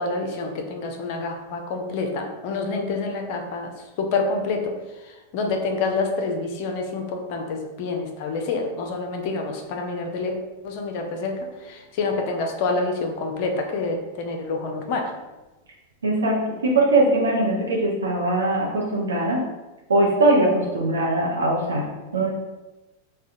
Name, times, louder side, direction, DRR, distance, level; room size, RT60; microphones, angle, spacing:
voice 1, 0.0-4.8 5.3-10.4 10.6-15.1, left 3 dB, 45° left, 4 dB, 0.4 m, -27 dB
voice 2, 16.0-19.4 19.9-21.9 22.1-22.3, right 2 dB, 70° right, -3 dB, 0.5 m, -21 dB
4.7 x 2.1 x 2.6 m, 1.1 s
figure-of-eight pair, 90°, 0 cm